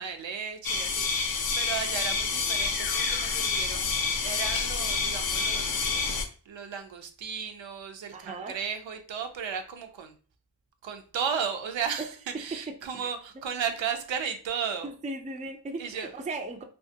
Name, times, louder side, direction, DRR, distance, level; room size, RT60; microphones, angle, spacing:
voice 1, 0.0-10.2 10.8-14.9 15.8-16.1, right 7 dB, 85° right, 0.6 m, -35 dB
sound 1, 0.6-6.2, left 5 dB, 55° left, 0.5 m, -28 dB
voice 2, 8.1-8.5 14.8-16.6, right 2 dB, 20° right, 0.3 m, -37 dB
2.8 x 2.3 x 2.6 m
wide cardioid pair, 120°, 44 cm